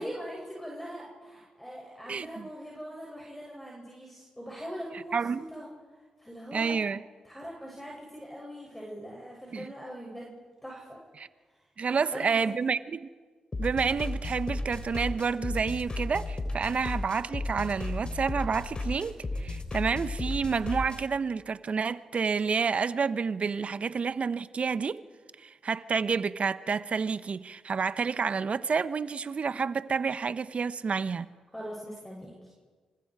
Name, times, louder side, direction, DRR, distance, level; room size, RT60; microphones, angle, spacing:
voice 1, 0.0-5.7 6.2-6.8 7.2-10.4 10.6-11.0 11.9-12.6 31.5-32.3, equal, 5° left, 7.8 m, -41 dB
voice 2, 2.1-2.5 5.1-5.4 6.5-7.0 9.5-9.7 11.2-11.3 11.8-13.1 13.6-25.0 25.4-31.3, right 5 dB, 55° right, 1.0 m, -29 dB
sound 1, 13.5-21.0, left 2 dB, 40° left, 3.8 m, -34 dB
27.0 x 26.0 x 4.9 m
hypercardioid pair, 40°, 3 cm